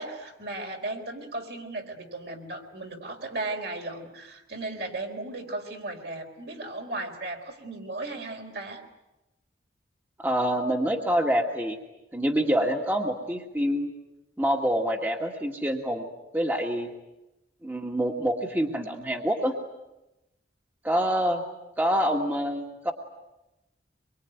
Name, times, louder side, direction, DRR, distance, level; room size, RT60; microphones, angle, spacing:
voice 1, 0.0-8.8, right 2 dB, 60° right, 3 dB, 4.3 m, -36 dB
voice 2, 10.2-11.8 12.1-13.9 14.4-16.1 16.3-16.9 17.6-19.5 20.8-21.4 21.8-22.9, equal, 10° right, 2 dB, 1.8 m, -26 dB
25.0 x 23.5 x 9.4 m, 0.97 s
head